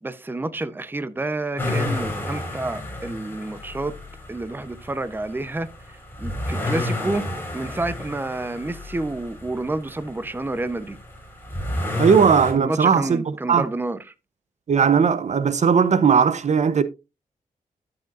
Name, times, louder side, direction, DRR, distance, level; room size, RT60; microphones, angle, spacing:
voice 1, 0.0-3.9 4.3-5.7 6.2-7.2 7.5-11.0 12.5-14.0, right 2 dB, 15° right, 0.7 m, -29 dB
sound 1, 1.6-12.5, left 1 dB, 15° left, 4.2 m, -31 dB
voice 2, 12.0-13.7 14.7-16.8, right 6 dB, 50° right, 0.7 m, -18 dB
13.0 x 7.8 x 2.4 m
wide cardioid pair, 130°, 15 cm